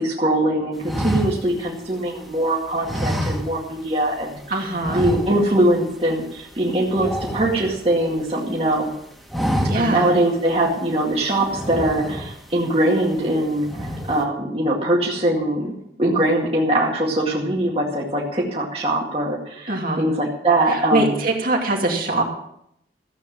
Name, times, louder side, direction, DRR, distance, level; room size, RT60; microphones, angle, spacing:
voice 1, 0.0-4.4 4.9-8.9 9.7-15.7 16.0-21.2, right 1 dB, 30° right, -3 dB, 2.2 m, -22 dB
sound 1, 0.8-2.3 2.8-3.9 4.2-4.4 4.8-5.7 6.0-6.2 6.5-8.2 8.6-8.9 9.2-10.1 10.5-10.6 11.4-12.5 13.0-13.3 13.6-14.2, equal, ahead, 2.0 m, -27 dB
voice 2, 4.5-5.0 9.7-10.1 19.7-20.0 20.7-22.2, right 2 dB, 50° right, 0 dB, 2.6 m, -22 dB
14.5 x 8.4 x 7.4 m, 0.74 s
head